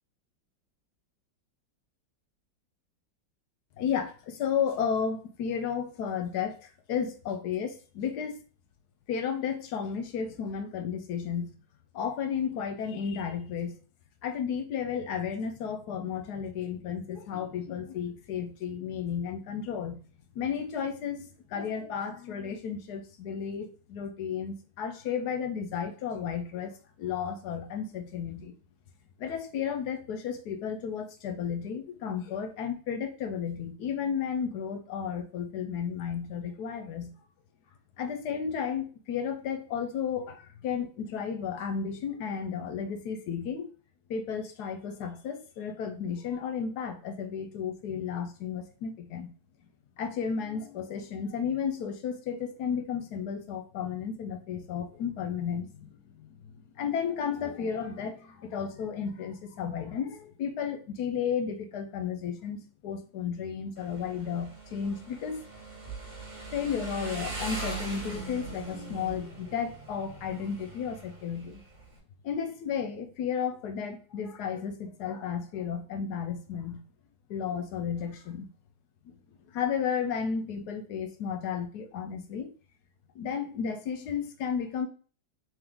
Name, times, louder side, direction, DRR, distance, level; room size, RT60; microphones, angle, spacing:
voice 1, 3.8-8.4 9.1-11.5 11.9-13.8 14.2-20.0 20.3-28.5 29.2-37.1 38.0-43.7 44.1-49.3 50.0-56.3 56.8-65.4 66.5-71.6 72.2-76.8 77.3-78.5 79.0-79.1 79.5-82.5 83.1-84.9, left 7 dB, 70° left, 1.1 m, -33 dB
Motorcycle, 63.8-72.0, right 3 dB, 30° right, 1.1 m, -41 dB
3.7 x 2.9 x 3.6 m
omnidirectional pair, 2.1 m